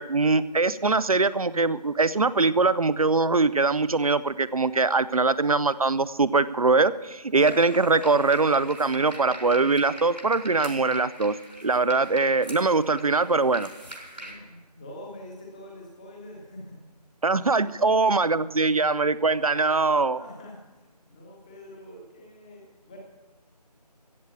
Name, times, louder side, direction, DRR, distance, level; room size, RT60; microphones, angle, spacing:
voice 1, 0.0-11.4 11.6-13.7 17.2-20.2, right 3 dB, 55° right, 17 dB, 0.6 m, -22 dB
sound 1, 7.3-14.3, right 1 dB, 85° right, 4.8 m, -42 dB
voice 2, 14.1-16.8 17.7-17.9 20.1-23.0, left 1 dB, 10° left, 0 dB, 1.3 m, -45 dB
15.0 x 8.2 x 7.1 m, 1.3 s
figure-of-eight pair, 165°, 21 cm